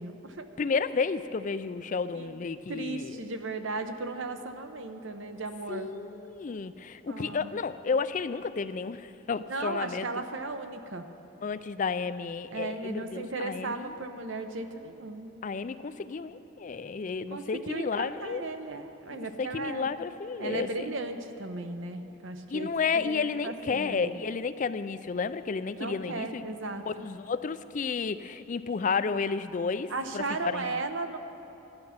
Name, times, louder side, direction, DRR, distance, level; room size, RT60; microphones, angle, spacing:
voice 1, 0.0-0.5 2.1-2.4 2.7-5.9 7.1-7.6 9.5-11.1 12.5-15.3 17.3-19.9 20.4-24.2 25.8-27.1 29.9-31.2, right 3 dB, 65° right, 8 dB, 0.8 m, -36 dB
voice 2, 0.6-3.2 5.7-10.1 11.4-13.9 15.4-18.4 19.1-20.9 22.5-26.4 26.9-30.8, left 5 dB, 40° left, 13 dB, 0.3 m, -32 dB
15.5 x 10.5 x 5.7 m, 3.0 s
head